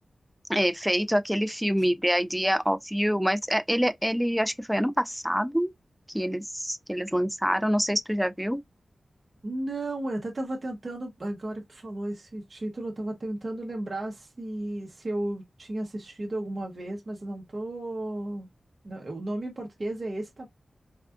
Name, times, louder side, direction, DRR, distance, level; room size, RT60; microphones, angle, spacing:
voice 1, 0.5-5.7 6.1-8.6, equal, ahead, 0.3 m, -26 dB
voice 2, 9.4-18.5 18.8-20.5, right 1 dB, 40° right, 0.7 m, -34 dB
3.5 x 2.3 x 2.4 m
wide cardioid pair, 90°, 0 cm